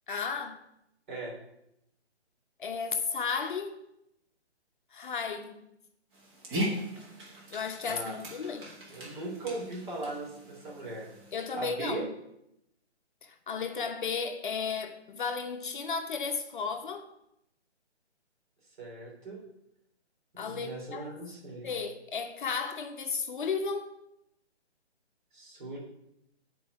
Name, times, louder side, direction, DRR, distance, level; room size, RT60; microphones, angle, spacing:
voice 1, 0.1-0.6 2.6-3.8 4.9-5.6 7.5-8.7 11.3-12.1 13.2-17.1 20.4-21.1 21.6-23.9, left 5 dB, 45° left, 0.8 m, -34 dB
Dog, 6.1-11.4, equal, 20° right, 1.4 m, -39 dB
voice 2, 7.8-8.2 8.9-11.1 11.5-12.1 18.8-19.4 20.3-21.7 25.3-25.8, right 2 dB, 45° right, 3.4 m, -38 dB
9.3 x 4.7 x 6.0 m
figure-of-eight pair, 145°, 34 cm